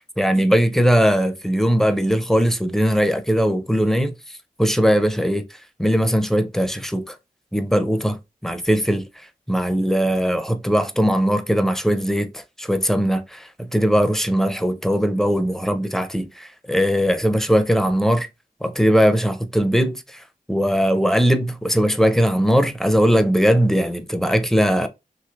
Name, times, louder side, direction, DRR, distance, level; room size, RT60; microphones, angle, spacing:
voice 1, 0.2-4.1 4.6-5.4 5.8-7.2 7.5-8.2 8.4-9.0 9.5-18.3 18.6-20.2 20.5-24.9, equal, 5° left, 0.5 m, -19 dB
3.1 x 2.7 x 2.5 m
cardioid pair, 45°, 15 cm